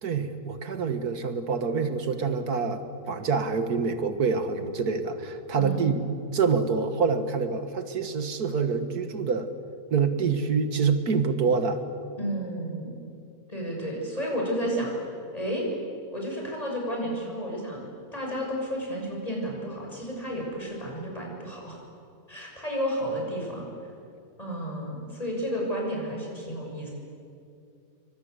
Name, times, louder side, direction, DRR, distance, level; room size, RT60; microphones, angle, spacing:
voice 1, 0.0-6.0 6.3-9.5 9.9-11.8, right 5 dB, 80° right, 9 dB, 2.1 m, -26 dB
voice 2, 5.5-5.8 12.2-13.0 13.5-14.9 15.3-15.7 16.1-21.8 22.3-23.7 24.4-26.9, equal, 25° left, -2 dB, 6.8 m, -32 dB
28.0 x 24.0 x 8.1 m, 2.6 s
omnidirectional pair, 1.6 m